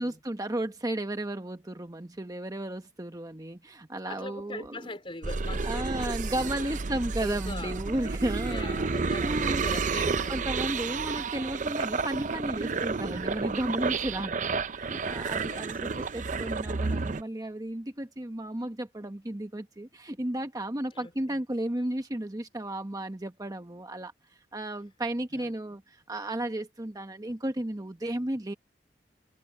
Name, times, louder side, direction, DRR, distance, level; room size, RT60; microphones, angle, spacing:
voice 1, 0.0-4.9 5.6-8.8 9.2-9.6 10.3-24.1 24.5-28.5, right 1 dB, 20° right, 1.0 m, -34 dB
voice 2, 4.1-6.7 7.2-7.8 8.5-11.1 15.3-16.0 20.9-21.4 25.3-25.5, left 2 dB, 30° left, 3.7 m, -42 dB
sound 1, 5.2-17.2, right 4 dB, 45° right, 0.6 m, -31 dB
head